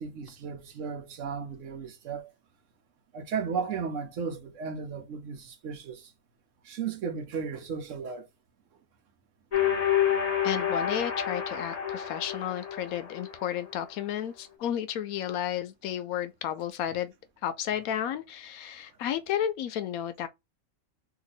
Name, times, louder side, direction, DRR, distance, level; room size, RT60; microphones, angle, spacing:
voice 1, 0.0-2.3 3.1-6.1 6.6-8.3, right 6 dB, 65° right, 1.0 m, -35 dB
sound 1, 9.5-13.4, left 9 dB, 35° left, 0.7 m, -28 dB
voice 2, 10.4-17.1 17.4-20.3, left 10 dB, 90° left, 1.1 m, -32 dB
2.9 x 2.6 x 3.9 m
omnidirectional pair, 1.5 m